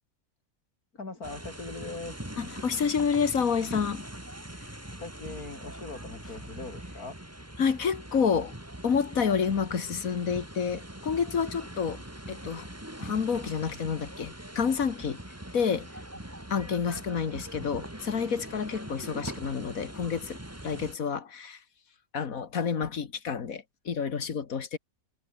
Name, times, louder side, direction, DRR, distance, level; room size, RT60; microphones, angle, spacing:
voice 1, 0.9-2.2 5.0-7.2, left 3 dB, 85° left, 4.8 m, -40 dB
sound 1, 1.2-21.0, right 1 dB, 10° right, 2.7 m, -42 dB
voice 2, 2.4-4.0 4.6-4.7 7.6-8.5 8.8-12.0 12.3-12.7 13.0-15.2 15.5-15.9 16.5-20.4 20.6-21.6 22.1-24.8, left 6 dB, 70° left, 2.1 m, -29 dB
omnidirectional pair, 1.5 m